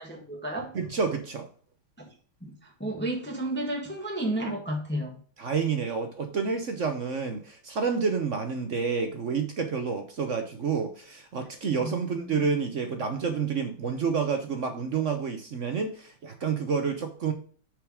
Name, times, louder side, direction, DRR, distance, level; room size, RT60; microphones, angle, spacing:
voice 1, 0.0-0.7 2.0-2.1 2.4-5.2 11.8-12.5, right 1 dB, 5° left, 1 dB, 1.3 m, -32 dB
voice 2, 0.7-1.5 5.4-17.3, right 5 dB, 55° right, 6 dB, 0.8 m, -29 dB
6.6 x 4.8 x 4.9 m, 0.43 s
omnidirectional pair, 2.3 m